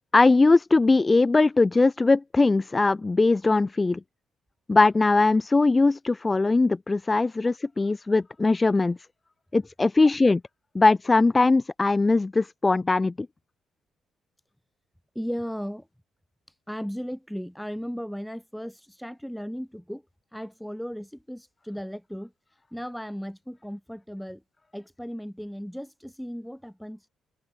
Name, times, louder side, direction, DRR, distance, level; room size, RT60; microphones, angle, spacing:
voice 1, 0.1-4.0 4.7-9.0 9.5-10.4 10.7-13.3, left 3 dB, 20° left, 0.4 m, -20 dB
voice 2, 15.1-15.9 16.5-20.0 20.3-22.3 22.7-24.4 24.7-27.1, equal, ahead, 4.9 m, -36 dB
open air
cardioid pair, 90°, 0 cm